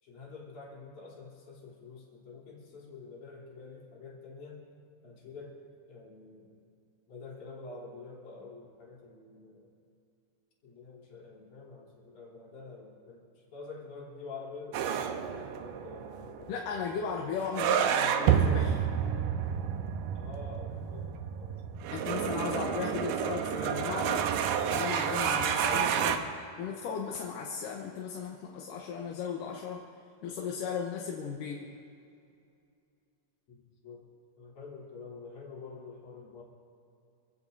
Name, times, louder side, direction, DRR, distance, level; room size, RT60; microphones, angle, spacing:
voice 1, 0.0-4.7 5.0-5.6 5.9-6.5 7.1-9.7 10.6-16.6 20.1-22.4 33.5-34.0 34.4-36.4, left 3 dB, 55° left, -5 dB, 4.7 m, -47 dB
sound 1, 14.7-26.2, right 8 dB, 75° right, 2.4 m, -30 dB
voice 2, 16.5-18.9 21.9-24.3 24.7-26.3 26.6-29.9 30.2-31.7, left 6 dB, 70° left, 0 dB, 2.5 m, -36 dB
27.5 x 16.0 x 2.7 m, 2.5 s
omnidirectional pair, 4.2 m